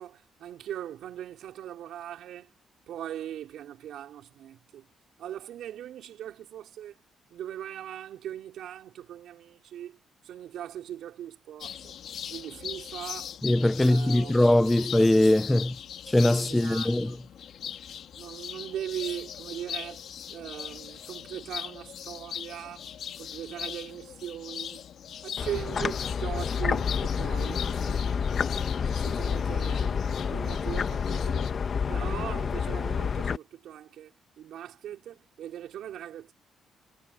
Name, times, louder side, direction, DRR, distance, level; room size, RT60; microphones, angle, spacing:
voice 1, 0.0-2.5 2.9-4.9 5.2-7.0 7.3-10.0 10.2-12.0 12.3-13.4 13.8-14.9 16.5-17.2 18.2-20.0 20.3-22.9 23.2-24.9 25.2-28.4 28.9-31.5 31.9-36.3, right 11 dB, 75° right, 5.0 m, -40 dB
sound 1, 11.6-31.5, left 9 dB, 70° left, 3.4 m, -40 dB
voice 2, 13.4-15.8 16.1-17.2, left 1 dB, 10° left, 0.8 m, -21 dB
sound 2, 25.4-33.4, left 6 dB, 45° left, 1.5 m, -29 dB
cardioid pair, 90°, 0 cm